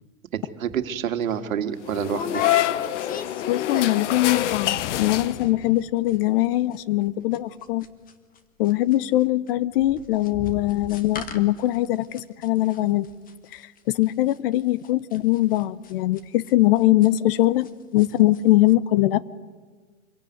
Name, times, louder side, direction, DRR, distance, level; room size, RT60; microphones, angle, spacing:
voice 1, 0.3-2.5, right 8 dB, 70° right, 8 dB, 2.1 m, -28 dB
sound 1, 0.7-0.8 1.2-1.4 2.0-4.2 4.5-4.9 5.1-5.2 5.4-5.8 6.1-17.7 18.0-18.4 18.7-18.8, left 5 dB, 20° left, 1.5 m, -38 dB
sound 2, 1.9-5.8, left 13 dB, 55° left, 1.1 m, -26 dB
voice 2, 3.5-7.9 8.6-13.1 13.5-13.6 13.9-19.2, left 16 dB, 40° left, 19 dB, 0.7 m, -22 dB
25.5 x 16.5 x 9.5 m, 1.5 s
hypercardioid pair, 130°, 42 cm